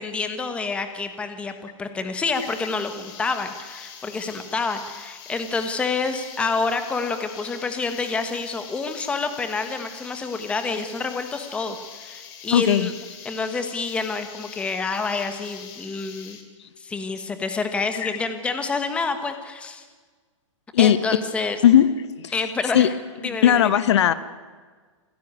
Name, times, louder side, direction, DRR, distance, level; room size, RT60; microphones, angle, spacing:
voice 1, 0.0-1.5 1.8-12.9 13.2-16.4 16.8-19.8 20.8-21.6 22.3-22.9 23.2-23.7, left 4 dB, 5° left, 8 dB, 1.3 m, -28 dB
sound 1, 2.3-16.4, left 7 dB, 25° left, 2.7 m, -43 dB
voice 2, 12.5-12.9 18.0-18.1 20.7-21.0 21.6-21.9 22.2-22.3 22.7-22.9 23.4-24.1, left 10 dB, 60° left, 15 dB, 1.1 m, -16 dB
27.0 x 16.0 x 9.5 m, 1.5 s
hypercardioid pair, 165°, 17 cm